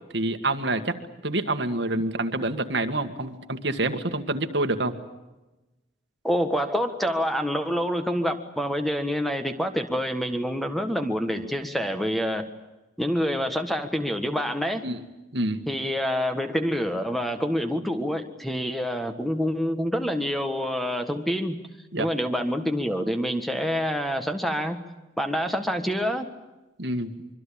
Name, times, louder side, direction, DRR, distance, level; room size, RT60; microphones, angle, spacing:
voice 1, 0.1-1.0 1.2-5.0 14.8-15.0 15.3-15.6 21.9-22.1 26.8-27.1, right 2 dB, 65° right, 7 dB, 1.9 m, -27 dB
voice 2, 6.2-12.5 13.0-14.9 15.7-21.6 22.0-24.8 25.2-26.3, equal, ahead, 6 dB, 1.5 m, -27 dB
25.0 x 24.0 x 8.7 m, 1.0 s
head